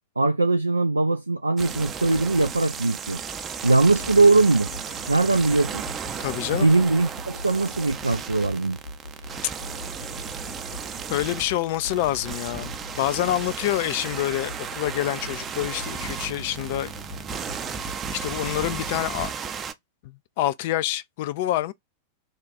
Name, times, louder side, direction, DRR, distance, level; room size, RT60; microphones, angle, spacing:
voice 1, 0.2-3.2 3.6-4.7 5.1-5.8 6.5-8.8, right 3 dB, 80° right, 0.3 m, -20 dB
sound 1, 1.6-19.7, right 6 dB, 25° right, 0.5 m, -35 dB
sound 2, 4.0-19.3, equal, 85° left, 1.4 m, -42 dB
voice 2, 6.2-6.7 11.1-16.9 18.1-19.3 20.0-21.7, left 14 dB, 50° left, 0.4 m, -27 dB
3.6 x 2.3 x 3.9 m
figure-of-eight pair, 90°, 0 cm